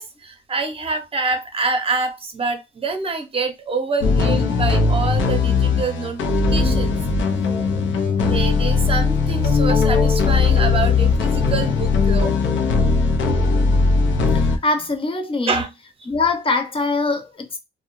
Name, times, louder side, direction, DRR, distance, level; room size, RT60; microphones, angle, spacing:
voice 1, 0.0-7.0 8.2-12.4 15.5-15.7, right 4 dB, 30° right, 0.7 m, -26 dB
sound 1, 4.0-14.6, left 4 dB, 70° left, 0.6 m, -18 dB
voice 2, 14.3-15.6 16.1-17.6, left 3 dB, 25° left, 0.6 m, -23 dB
2.3 x 2.2 x 3.0 m
cardioid pair, 90°, 20 cm